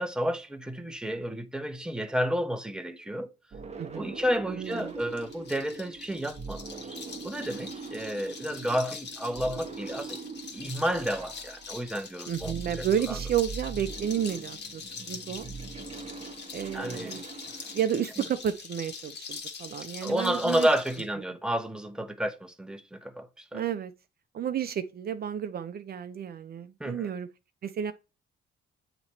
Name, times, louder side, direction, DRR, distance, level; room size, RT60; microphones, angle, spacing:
voice 1, 0.0-3.3 3.9-7.0 7.2-10.2 10.5-13.2 16.7-17.2 20.0-23.6 26.8-27.1, equal, 5° right, 0.7 m, -31 dB
sound 1, 3.5-17.9, right 4 dB, 35° right, 1.0 m, -42 dB
voice 2, 3.8-4.2 4.5-4.9 12.3-15.5 16.5-17.2 17.7-20.7 23.5-23.9 24.3-27.3 27.6-27.9, right 9 dB, 50° right, 0.5 m, -31 dB
sound 2, 4.6-21.1, left 5 dB, 60° left, 1.5 m, -43 dB
7.7 x 3.0 x 4.2 m
cardioid pair, 90°, 20 cm